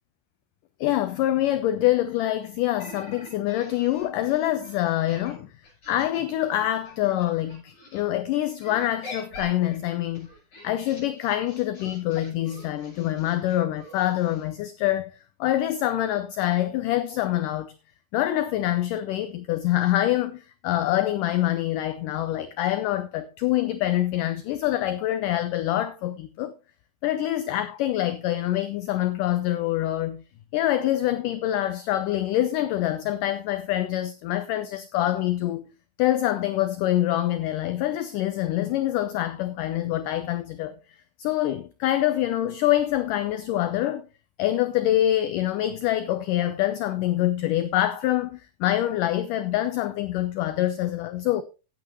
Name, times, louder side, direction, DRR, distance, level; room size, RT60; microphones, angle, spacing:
voice 1, 0.8-5.5 5.9-10.3 10.6-17.7 18.1-26.5 27.0-30.2 30.5-35.7 36.0-40.7 41.2-44.1 44.4-51.4, left 13 dB, 80° left, 1.9 m, -25 dB
sound 1, 2.8-8.0 8.6-14.4, left 1 dB, 40° left, 8.5 m, -45 dB
16.5 x 8.5 x 3.0 m
omnidirectional pair, 4.5 m